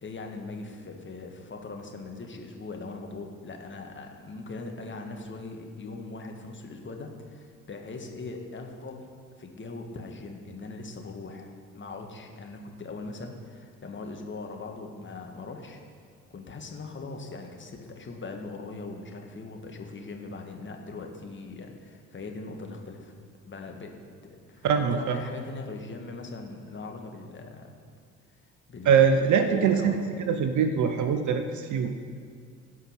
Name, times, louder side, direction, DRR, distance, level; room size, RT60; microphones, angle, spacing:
voice 1, 0.0-15.8 16.3-23.2 23.5-23.9 24.2-24.7 24.9-27.7 28.7-30.4, left 3 dB, 30° left, 3 dB, 1.7 m, -40 dB
voice 2, 24.6-25.2 28.8-29.9 30.3-32.0, right 7 dB, 50° right, 8 dB, 0.8 m, -23 dB
16.0 x 5.6 x 5.7 m, 2.1 s
figure-of-eight pair, 45°, 39 cm